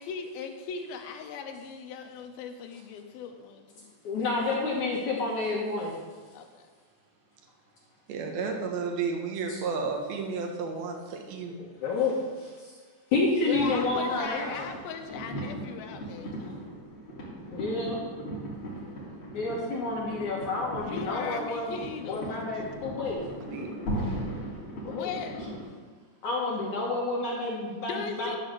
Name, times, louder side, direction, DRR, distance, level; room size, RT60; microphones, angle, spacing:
voice 1, 0.0-3.9 6.3-6.6 13.4-16.6 20.8-22.4 24.9-25.4 27.9-28.4, left 6 dB, 80° left, 5 dB, 2.3 m, -38 dB
voice 2, 4.0-6.0 9.5-9.6 11.6-12.8 13.1-14.7 17.5-18.0 19.3-21.7 22.0-23.2 24.8-25.1 26.2-28.3, left 3 dB, 60° left, -4 dB, 2.1 m, -29 dB
voice 3, 8.1-11.6 23.4-23.7, right 5 dB, 70° right, 2 dB, 2.8 m, -32 dB
sound 1, 13.5-25.6, equal, 35° left, 2.9 m, -38 dB
12.5 x 4.7 x 6.7 m, 1.5 s
omnidirectional pair, 4.9 m